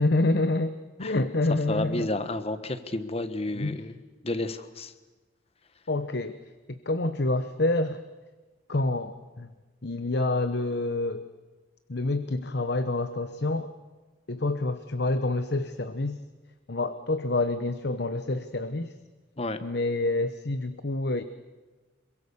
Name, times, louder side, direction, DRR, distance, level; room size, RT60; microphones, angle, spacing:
voice 1, 0.0-2.1 3.5-3.8 5.9-6.4 6.7-8.0 8.7-9.5 9.8-11.3 11.9-13.7 14.3-16.2 16.7-18.9 19.6-21.2, left 2 dB, 60° left, 11 dB, 1.0 m, -27 dB
voice 2, 1.7-4.0 4.2-4.9 19.4-19.6, left 2 dB, 30° left, 11 dB, 1.3 m, -31 dB
26.5 x 23.5 x 7.1 m, 1.3 s
head